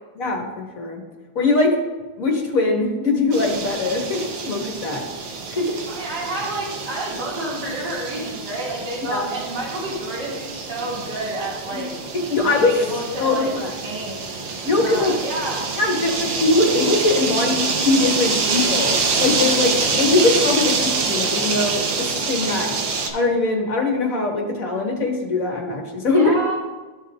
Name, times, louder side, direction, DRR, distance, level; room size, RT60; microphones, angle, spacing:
voice 1, 0.1-1.0 1.3-1.8 2.2-5.0 5.5-5.8 9.0-9.3 11.7-11.8 12.1-12.7 13.2-13.7 14.6-15.1 15.8-22.7 23.1-26.4, left 3 dB, 45° left, 0 dB, 1.7 m, -21 dB
sound 1, 3.3-23.1, right 4 dB, 85° right, 1.8 m, -26 dB
voice 2, 5.9-11.9 12.5-13.5 13.8-14.3 14.8-15.7 26.1-26.5, right 2 dB, 55° right, -7 dB, 2.8 m, -29 dB
13.5 x 5.6 x 2.5 m, 1.2 s
omnidirectional pair, 2.3 m